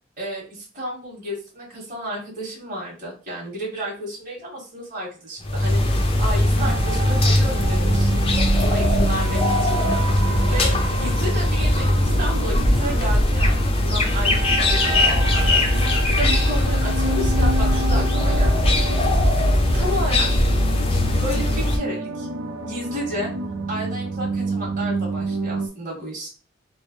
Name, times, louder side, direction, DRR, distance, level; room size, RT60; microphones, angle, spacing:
voice 1, 0.2-8.1 8.6-9.8 10.5-18.7 19.2-20.3 21.2-22.3 22.6-23.3 23.7-26.3, equal, 40° right, -6 dB, 1.4 m, -32 dB
sound 1, 5.4-21.8, left 1 dB, 30° left, 0.5 m, -20 dB
sound 2, 6.6-25.7, right 3 dB, 85° right, 0.5 m, -29 dB
3.2 x 2.1 x 4.2 m, 0.36 s
head